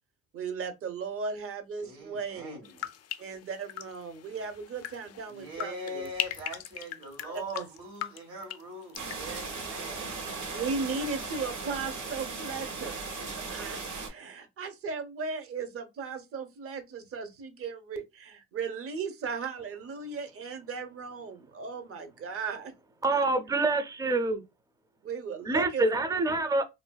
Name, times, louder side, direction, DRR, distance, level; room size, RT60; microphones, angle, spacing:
voice 1, 0.3-2.6 3.2-6.1 7.5-7.7 10.5-13.0 13.5-13.8 14.0-22.7 23.1-23.3 25.0-25.9, right 5 dB, 50° right, 0.7 m, -36 dB
voice 2, 1.8-2.9 5.3-10.1, equal, 90° right, 1.3 m, -42 dB
sound 1, 2.6-10.6 10.8-11.4, left 11 dB, 55° left, 0.4 m, -41 dB
sound 2, 9.0-14.1, right 4 dB, 70° right, 1.1 m, -37 dB
voice 3, 23.0-24.4 25.4-26.6, right 2 dB, 10° right, 0.4 m, -26 dB
2.7 x 2.5 x 2.2 m
cardioid pair, 90°, 30 cm